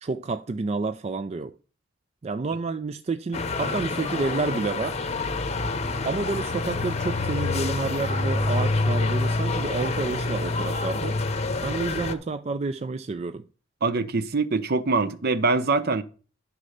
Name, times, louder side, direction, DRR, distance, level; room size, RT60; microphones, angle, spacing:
voice 1, 0.0-1.6 2.2-5.0 6.0-11.2 11.6-13.4, right 4 dB, 35° right, 0.4 m, -29 dB
sound 1, 3.3-12.1, left 3 dB, 35° left, 0.8 m, -27 dB
voice 2, 13.8-16.0, right 3 dB, 55° right, 0.8 m, -23 dB
11.0 x 4.3 x 6.5 m
head